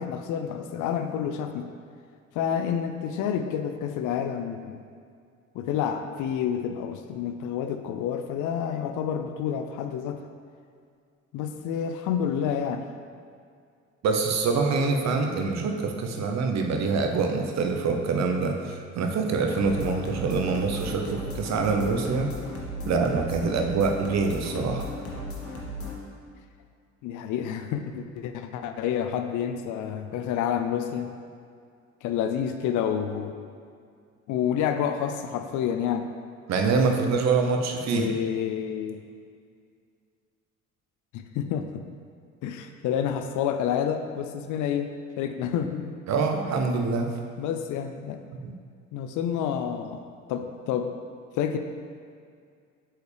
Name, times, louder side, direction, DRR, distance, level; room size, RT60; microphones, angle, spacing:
voice 1, 0.0-1.7 2.3-4.8 5.5-10.2 11.3-12.8 27.0-31.1 32.0-33.3 34.3-36.1 37.9-39.0 41.1-41.8 42.4-44.9 45.2-45.8 47.4-48.2 48.9-50.0 50.3-50.9 51.4-51.6, left 8 dB, 50° left, 7 dB, 0.5 m, -29 dB
voice 2, 14.0-22.3 22.8-24.9 36.5-38.1 46.1-47.1 48.4-48.5, right 4 dB, 45° right, 3 dB, 0.8 m, -25 dB
sound 1, 19.5-26.0, left 1 dB, 35° left, 1.6 m, -36 dB
7.8 x 4.6 x 3.4 m, 2.2 s
figure-of-eight pair, 55°, 39 cm